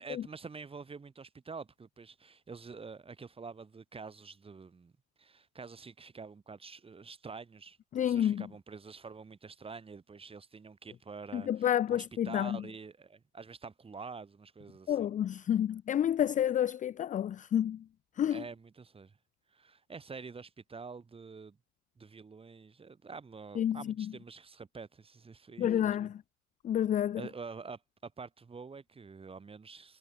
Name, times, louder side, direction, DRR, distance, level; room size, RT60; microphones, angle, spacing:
voice 1, 0.0-4.9 5.2-7.8 8.0-15.1 18.3-19.2 19.5-21.6 22.0-26.1 27.2-30.0, right 4 dB, 15° right, 5.6 m, -47 dB
voice 2, 7.9-8.5 11.3-12.6 14.9-17.8 18.2-18.4 23.6-23.8 25.6-26.2 26.6-27.2, left 10 dB, 20° left, 0.7 m, -29 dB
supercardioid pair, 155°, 42 cm